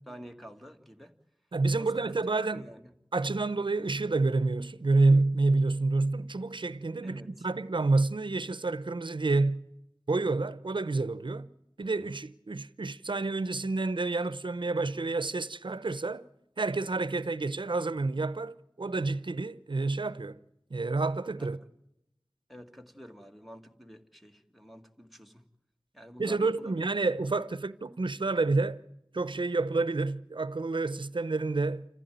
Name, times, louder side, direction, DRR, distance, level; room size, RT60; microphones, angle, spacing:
voice 1, 0.1-1.2 1.8-2.2 2.5-2.9 7.0-7.5 21.4-21.5 22.5-25.5 25.9-26.8, equal, ahead, 2.0 m, -49 dB
voice 2, 1.5-2.7 3.1-9.6 10.1-11.5 11.8-16.2 16.6-20.4 20.7-21.6 26.2-28.8 29.1-31.8, right 3 dB, 70° right, 0.8 m, -28 dB
27.5 x 15.0 x 9.3 m
wide cardioid pair, 50°, 9 cm